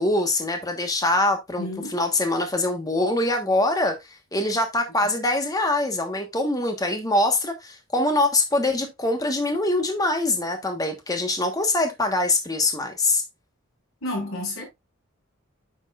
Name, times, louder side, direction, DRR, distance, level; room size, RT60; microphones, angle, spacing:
voice 1, 0.0-13.2, left 2 dB, 20° left, 1.2 m, -24 dB
voice 2, 1.6-2.0 14.0-14.6, left 1 dB, 85° left, 4.7 m, -30 dB
9.3 x 6.4 x 2.4 m
head